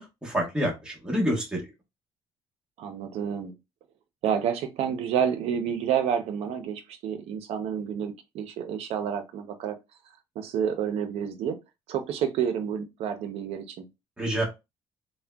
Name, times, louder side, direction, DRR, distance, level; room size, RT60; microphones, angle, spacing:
voice 1, 0.0-1.6 14.2-14.4, equal, 5° right, 1.1 m, -27 dB
voice 2, 2.8-3.5 4.2-9.7 10.4-11.6 11.9-13.9, right 8 dB, 80° right, 0.6 m, -29 dB
3.6 x 2.1 x 2.2 m
cardioid pair, 140°, 10 cm